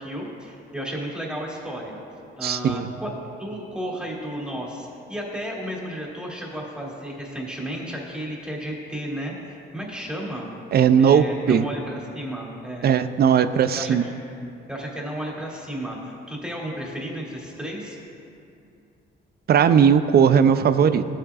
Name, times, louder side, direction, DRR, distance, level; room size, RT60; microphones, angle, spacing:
voice 1, 0.0-2.0 2.4-3.1 3.4-10.5 11.0-12.8 13.7-14.0 14.7-18.0, equal, 5° right, -3 dB, 2.6 m, -33 dB
voice 2, 2.4-2.9 10.7-11.6 12.8-14.0 19.5-21.1, right 7 dB, 55° right, 12 dB, 0.5 m, -18 dB
16.0 x 8.8 x 2.4 m, 2.5 s
cardioid pair, 90°, 20 cm